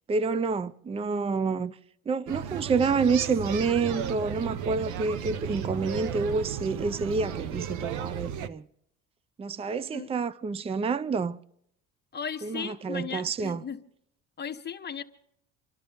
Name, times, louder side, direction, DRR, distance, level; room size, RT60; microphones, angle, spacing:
voice 1, 0.1-1.8 2.1-8.6 9.4-11.4 12.4-13.6, right 4 dB, 20° right, 0.5 m, -28 dB
sound 1, 2.3-8.5, right 9 dB, 70° right, 0.9 m, -34 dB
voice 2, 12.1-13.8 14.4-15.0, left 7 dB, 35° left, 1.1 m, -36 dB
28.0 x 12.0 x 3.5 m
cardioid pair, 105°, 31 cm